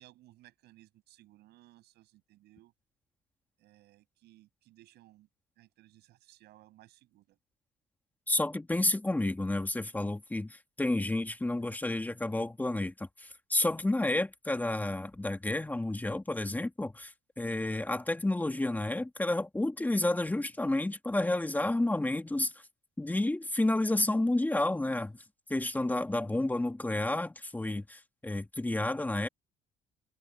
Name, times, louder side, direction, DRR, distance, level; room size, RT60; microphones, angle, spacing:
voice 1, 0.0-2.7 3.6-5.3 5.6-7.4, right 16 dB, 80° right, 7.8 m, -60 dB
voice 2, 8.3-22.6 23.0-25.2 25.5-29.3, left 2 dB, 10° left, 2.0 m, -30 dB
cardioid pair, 110°, 17 cm